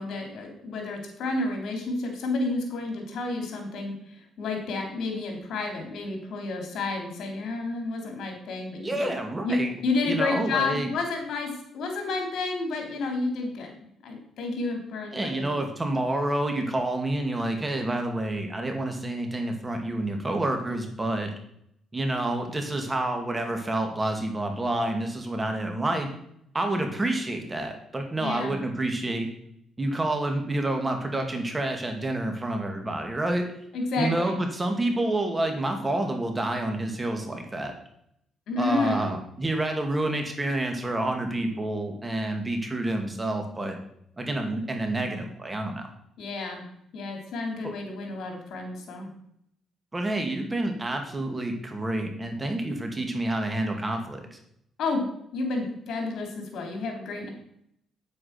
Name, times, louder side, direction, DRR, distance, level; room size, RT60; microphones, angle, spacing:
voice 1, 0.0-9.1 9.4-13.7 14.0-15.6 28.2-28.6 33.7-34.4 38.5-39.1 46.2-46.7 46.9-49.1 54.8-57.3, left 3 dB, 70° left, 3 dB, 3.5 m, -30 dB
voice 2, 8.8-9.7 10.0-10.9 15.1-21.3 21.9-26.1 26.5-29.3 29.8-33.5 34.0-37.7 38.6-43.8 44.2-45.9 47.6-47.7 49.9-54.4, right 1 dB, 20° right, 4 dB, 2.4 m, -28 dB
9.2 x 8.6 x 6.0 m, 0.71 s
cardioid pair, 90°, 0 cm